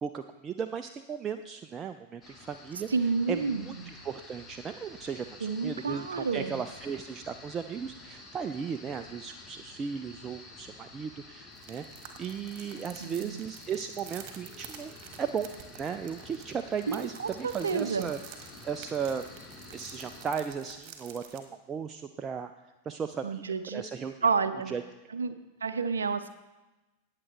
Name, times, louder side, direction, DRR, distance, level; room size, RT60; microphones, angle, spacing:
voice 1, 0.0-2.9 3.3-11.8 12.2-14.9 15.2-15.5 15.7-18.2 18.6-19.2 19.7-22.5 22.8-24.4 24.7-24.8, right 7 dB, 25° right, 7 dB, 0.4 m, -36 dB
sound 1, 2.2-20.3, left 3 dB, 20° left, 1.3 m, -50 dB
voice 2, 2.9-3.9 5.4-6.6 13.0-13.4 16.9-18.1 23.2-23.8 24.2-24.7 25.1-25.4 25.6-26.3, right 5 dB, 70° right, 10 dB, 0.6 m, -30 dB
sound 2, 11.5-21.4, right 8 dB, 40° right, 1.6 m, -49 dB
18.5 x 7.6 x 3.3 m, 1.1 s
figure-of-eight pair, 90°, 0 cm